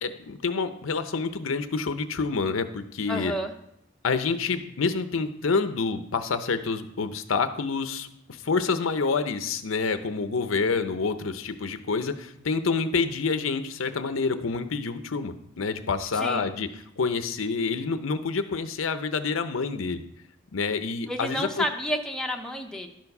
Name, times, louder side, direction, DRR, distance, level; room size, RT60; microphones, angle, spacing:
voice 1, 0.0-3.3 4.0-8.1 8.4-16.7 17.0-20.0 20.5-21.6, left 4 dB, 85° left, 10 dB, 0.7 m, -27 dB
voice 2, 3.1-3.5 16.1-16.5 21.1-22.9, equal, 5° left, 2 dB, 0.7 m, -30 dB
12.0 x 4.6 x 5.4 m, 0.75 s
head